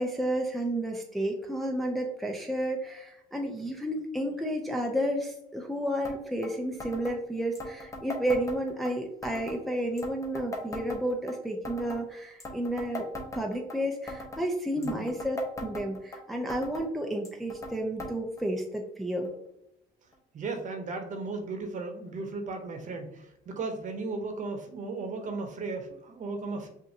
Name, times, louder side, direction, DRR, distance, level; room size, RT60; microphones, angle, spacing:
voice 1, 0.0-19.3, right 1 dB, ahead, 1 dB, 0.5 m, -31 dB
sound 1, 6.0-6.2 6.4-6.5 6.8-7.2 7.5-8.9 9.2-9.6 10.0-11.3 11.6-12.0 12.4-13.8 14.1-14.4 14.8-16.2 16.5-16.9 17.2-17.7 18.0-18.1 18.4-18.5 19.2-19.3 20.1-20.2, left 1 dB, 20° left, 0.9 m, -39 dB
voice 2, 14.8-15.1 20.3-26.7, right 3 dB, 50° right, 5 dB, 0.9 m, -36 dB
5.5 x 2.7 x 2.8 m, 0.83 s
cardioid pair, 110°, 17 cm